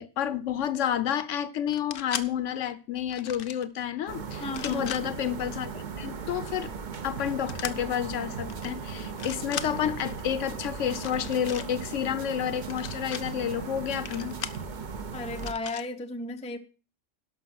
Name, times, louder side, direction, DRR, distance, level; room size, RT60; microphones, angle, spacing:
voice 1, 0.0-6.7 7.0-14.4, left 9 dB, 70° left, 1.0 m, -30 dB
sound 1, 1.7-2.3 3.1-3.7 4.4-5.0 7.5-7.7 8.5-8.7 9.0-9.7 10.9-11.7 12.6-13.2 14.1-14.6 15.4-15.9, left 8 dB, 55° left, 0.7 m, -37 dB
sound 2, 4.1-15.5, right 6 dB, 45° right, 0.8 m, -38 dB
voice 2, 4.4-4.9 15.1-16.6, left 2 dB, 10° left, 0.4 m, -34 dB
sound 3, 7.0-14.8, right 3 dB, 85° right, 1.8 m, -46 dB
11.5 x 5.8 x 5.8 m
omnidirectional pair, 1.4 m